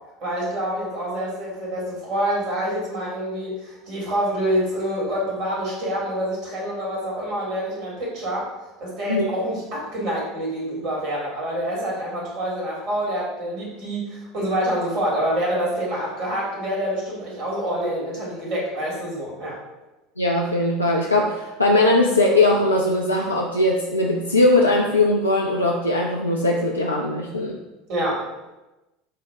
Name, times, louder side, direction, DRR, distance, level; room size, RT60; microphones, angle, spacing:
voice 1, 0.2-8.5 8.8-19.6 27.9-28.3, equal, 50° right, -4 dB, 1.5 m, -26 dB
voice 2, 20.2-27.6, left 2 dB, 85° left, -2 dB, 0.3 m, -20 dB
5.5 x 2.0 x 3.4 m, 1.0 s
figure-of-eight pair, 70°, 0 cm